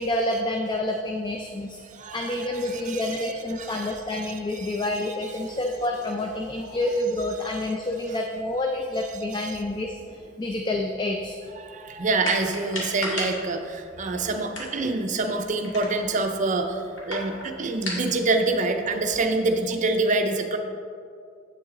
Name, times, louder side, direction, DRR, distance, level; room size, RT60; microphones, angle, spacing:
voice 1, 0.0-1.8 2.1-10.0 10.4-11.4, left 1 dB, 25° left, 2 dB, 0.4 m, -28 dB
voice 2, 2.0-3.2 3.6-3.9 4.5-4.8 11.6-16.7 17.1-20.6, right 3 dB, 40° right, 5 dB, 0.5 m, -26 dB
sound 1, 12.2-19.6, left 1 dB, 70° left, 2.1 m, -37 dB
8.1 x 7.7 x 3.7 m, 2.3 s
head